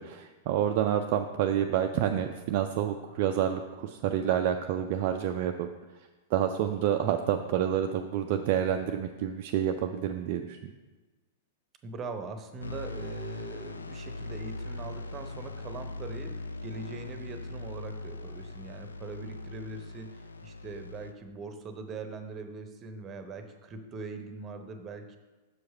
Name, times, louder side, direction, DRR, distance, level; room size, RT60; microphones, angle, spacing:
voice 1, 0.0-5.7 6.3-10.7, right 10 dB, 45° right, 5 dB, 0.4 m, -28 dB
voice 2, 11.8-16.3 16.6-25.2, right 3 dB, 25° right, 7 dB, 0.8 m, -41 dB
sound 1, 12.6-21.1, left 2 dB, 80° left, 0.4 m, -40 dB
6.5 x 4.7 x 5.4 m, 1.3 s
figure-of-eight pair, 95°, 0 cm